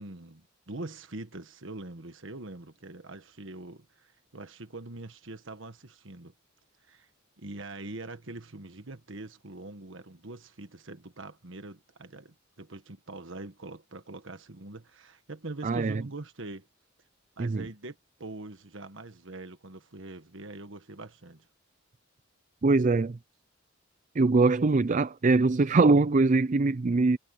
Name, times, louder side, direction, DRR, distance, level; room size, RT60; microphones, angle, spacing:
voice 1, 0.0-6.3 6.8-7.1 7.4-16.7 17.4-21.5, right 2 dB, 65° right, 1.5 m, -43 dB
voice 2, 15.6-16.0 17.4-17.7 22.6-23.2 24.1-27.2, right 3 dB, 40° right, 0.5 m, -22 dB
head